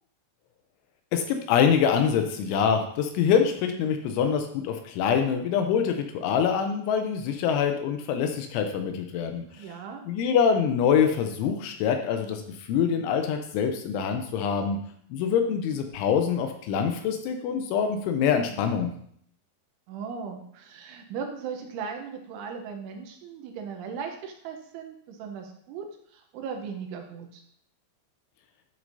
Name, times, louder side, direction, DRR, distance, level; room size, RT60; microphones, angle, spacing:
voice 1, 1.1-9.7 10.0-14.8 15.1-18.9, left 7 dB, 80° left, 6 dB, 2.9 m, -25 dB
voice 2, 9.6-10.0 18.5-18.9 19.9-25.9 26.1-27.4, right 6 dB, 80° right, 3 dB, 3.1 m, -38 dB
10.5 x 6.2 x 2.7 m, 0.65 s
omnidirectional pair, 5.8 m